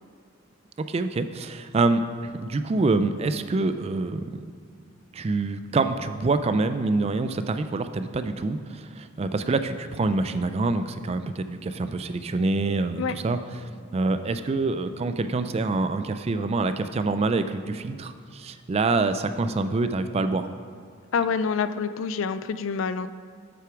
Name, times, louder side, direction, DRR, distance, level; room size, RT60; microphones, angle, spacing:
voice 1, 0.8-4.4 5.1-20.5, right 3 dB, 30° right, 10 dB, 0.3 m, -26 dB
voice 2, 21.1-23.1, left 6 dB, 70° left, 13 dB, 0.4 m, -27 dB
7.7 x 6.6 x 4.9 m, 2.2 s
head